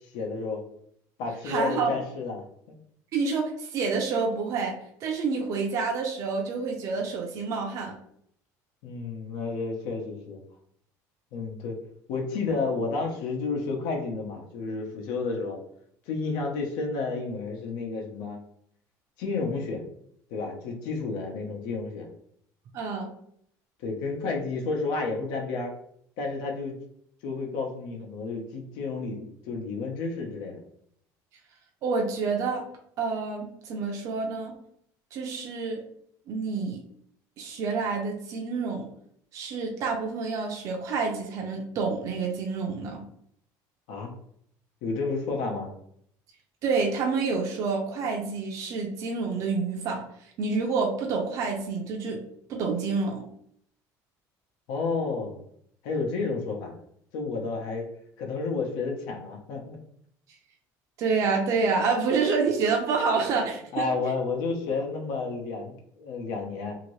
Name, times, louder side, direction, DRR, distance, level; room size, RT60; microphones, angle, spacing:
voice 1, 0.1-0.6 1.2-2.8 8.8-10.4 11.3-11.8 12.1-15.6 16.1-18.4 19.2-19.8 20.3-22.1 23.8-25.7 26.2-26.7 27.2-30.6 43.9-44.1 44.8-45.7 54.7-55.4 55.8-56.7 57.1-57.9 58.2-59.8 63.3-63.5 63.7-66.7, left 4 dB, 80° left, 1 dB, 0.8 m, -31 dB
voice 2, 1.4-1.9 3.1-4.7 5.0-8.0 22.7-23.1 31.8-32.6 33.0-34.5 35.1-35.8 36.3-36.8 37.4-38.9 39.3-43.1 46.6-50.0 50.4-52.2 52.5-53.2 61.0-63.8, right 4 dB, 45° right, 1 dB, 0.5 m, -28 dB
2.8 x 2.7 x 3.1 m, 0.67 s
cardioid pair, 160°, 8 cm